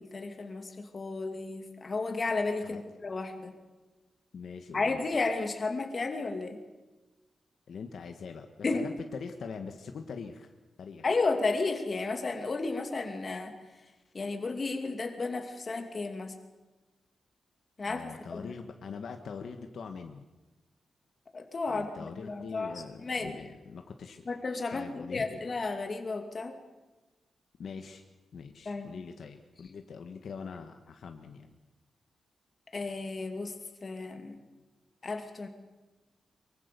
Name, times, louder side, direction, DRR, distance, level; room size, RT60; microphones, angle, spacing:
voice 1, 0.0-3.5 4.7-6.6 8.6-8.8 11.0-13.5 14.1-16.4 17.8-18.5 21.3-23.4 24.3-26.6 28.7-28.9 32.7-33.5 33.8-34.4 35.0-35.5, left 3 dB, 30° left, 5 dB, 2.4 m, -33 dB
voice 2, 4.3-5.0 7.7-10.5 10.8-11.0 17.9-20.2 21.7-24.3 24.7-25.4 27.6-28.0 28.3-31.5, left 5 dB, 60° left, 5 dB, 1.5 m, -43 dB
24.0 x 23.5 x 6.9 m, 1.1 s
wide cardioid pair, 180°, 0 cm